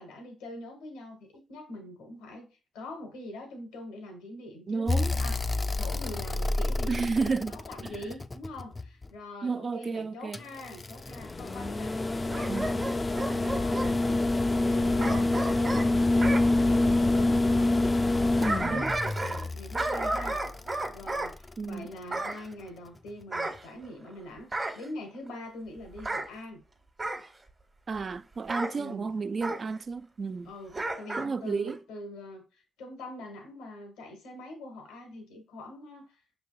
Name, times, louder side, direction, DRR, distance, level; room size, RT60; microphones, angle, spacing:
voice 1, 0.0-14.2 14.5-18.1 18.3-19.0 19.2-20.4 20.9-26.6 28.7-29.1 30.4-36.2, left 1 dB, 90° left, 1.1 m, -43 dB
voice 2, 4.7-5.1 6.9-7.5 9.4-10.4 12.5-12.8 18.6-18.8 21.6-21.9 27.9-30.5 31.2-31.8, right 4 dB, 50° right, 0.3 m, -32 dB
sound 1, 4.9-9.1 10.3-21.5 23.1-23.2, left 2 dB, 30° left, 0.4 m, -27 dB
Bark / Growling, 12.3-13.9 15.0-16.5 18.1-19.5 19.7-21.3 22.1-22.4 23.3-24.1 24.5-24.9 26.0-26.3 27.0-27.3 28.5-28.8 29.4-29.6 30.7-31.3 31.7-31.8, right 2 dB, 35° right, 0.9 m, -32 dB
5.7 x 3.4 x 2.3 m
supercardioid pair, 45°, 0 cm